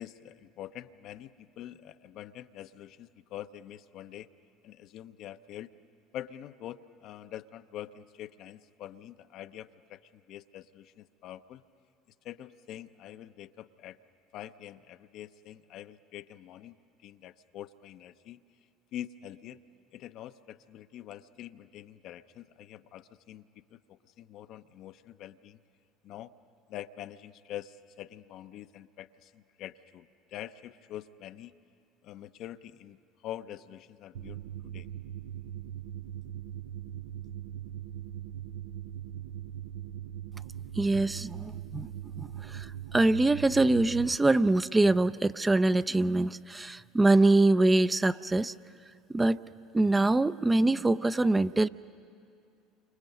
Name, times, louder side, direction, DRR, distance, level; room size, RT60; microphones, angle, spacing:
voice 1, 0.0-4.3 4.6-5.7 6.1-10.0 10.3-11.6 12.2-14.0 14.3-16.8 17.0-18.4 18.9-19.6 19.9-25.6 26.0-26.3 26.7-31.5 32.0-33.0 33.2-34.9, left 12 dB, 55° left, 11 dB, 0.6 m, -45 dB
sound 1, 34.1-44.2, right 11 dB, 75° right, 0.6 m, -40 dB
voice 2, 40.8-41.9 42.2-48.5 49.1-49.4 49.7-51.7, right 2 dB, 15° right, 14 dB, 0.5 m, -24 dB
29.0 x 25.5 x 5.4 m, 2.4 s
hypercardioid pair, 70°, 0 cm